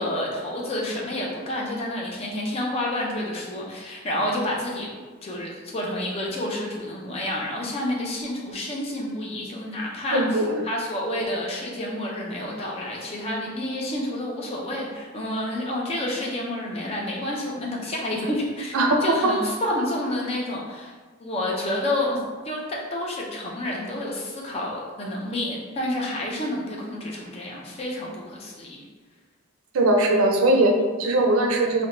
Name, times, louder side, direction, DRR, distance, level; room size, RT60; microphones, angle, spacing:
voice 1, 0.0-5.0 5.2-18.8 19.0-20.9 21.2-22.2 22.4-28.8, left 1 dB, 30° left, -2 dB, 0.4 m, -29 dB
voice 2, 10.1-10.6 18.7-19.3 29.7-31.9, right 1 dB, 80° right, 2 dB, 0.4 m, -20 dB
2.5 x 2.1 x 2.9 m, 1.4 s
head